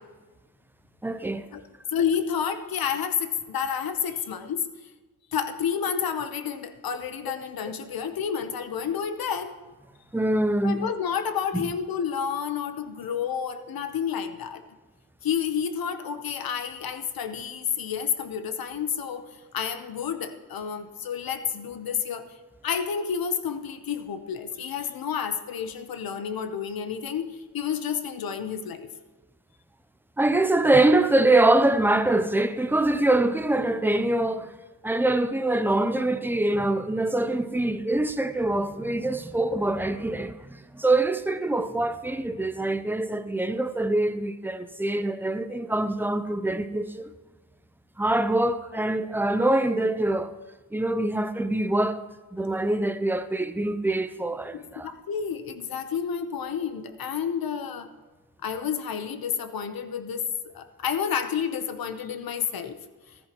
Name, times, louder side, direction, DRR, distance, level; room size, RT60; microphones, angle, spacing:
voice 1, 1.0-1.4 10.1-10.8 11.5-11.7 30.2-34.5 34.8-47.0 48.0-50.3 50.7-52.0 52.3-54.9, right 2 dB, 5° right, 0.5 m, -24 dB
voice 2, 1.9-4.6 5.3-9.5 10.6-14.6 15.2-22.2 22.6-28.9 54.5-57.9 58.4-62.8, left 7 dB, 65° left, 1.0 m, -30 dB
14.5 x 13.5 x 3.0 m
cardioid pair, 105°, 37 cm